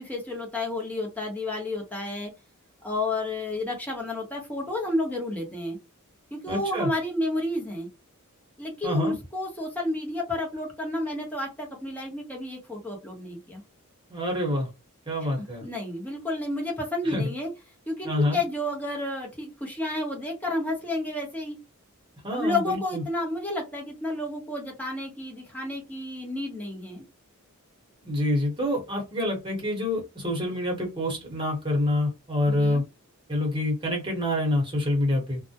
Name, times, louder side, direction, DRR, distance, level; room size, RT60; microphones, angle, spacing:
voice 1, 0.0-2.3 2.8-5.8 6.3-7.9 8.6-13.6 15.4-17.5 17.9-21.6 22.3-27.0 32.5-32.8, left 2 dB, 5° left, -1 dB, 0.8 m, -31 dB
voice 2, 6.5-6.9 8.8-9.2 14.1-14.7 15.1-15.7 17.0-17.3 18.0-18.4 22.2-23.0 28.0-32.8 33.3-35.4, left 1 dB, 20° right, -1 dB, 1.0 m, -27 dB
2.2 x 2.1 x 2.7 m, 0.25 s
head